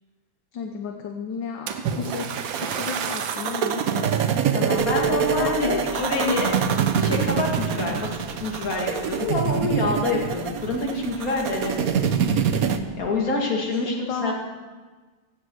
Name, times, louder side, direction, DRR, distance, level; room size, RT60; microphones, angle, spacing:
voice 1, 0.5-1.7 2.0-4.2 5.4-6.4 7.8-8.1 13.8-14.3, left 6 dB, 70° left, 5 dB, 1.5 m, -31 dB
Splash splatter, 1.7-3.7 4.4-4.6 5.2-5.3, right 6 dB, 75° right, 1.6 m, -31 dB
sound 1, 2.1-12.8, right 7 dB, 60° right, 1.0 m, -25 dB
voice 2, 4.5-6.6 7.0-12.0 13.0-13.9 14.2-14.3, left 3 dB, 45° left, 0 dB, 2.6 m, -27 dB
sound 2, 4.7-13.1, right 1 dB, ahead, 3.3 m, -45 dB
15.5 x 8.4 x 6.3 m, 1.4 s
omnidirectional pair, 2.1 m